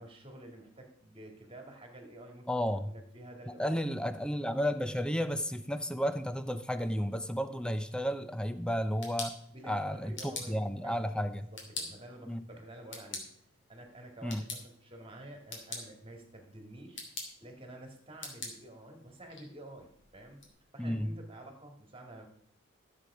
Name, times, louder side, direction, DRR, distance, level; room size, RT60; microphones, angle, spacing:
voice 1, 0.0-2.6 2.9-3.9 9.5-10.6 10.8-11.0 11.7-13.3 13.7-17.0 17.4-20.4 20.7-22.3, right 1 dB, 25° right, 3 dB, 2.2 m, -49 dB
voice 2, 2.5-2.9 3.5-9.3 9.7-11.5 12.3-12.4 14.2-14.4 20.8-21.1, equal, 5° left, 10 dB, 0.6 m, -32 dB
sound 1, 8.7-20.5, left 3 dB, 65° left, 3.0 m, -47 dB
14.0 x 7.9 x 4.9 m, 0.64 s
head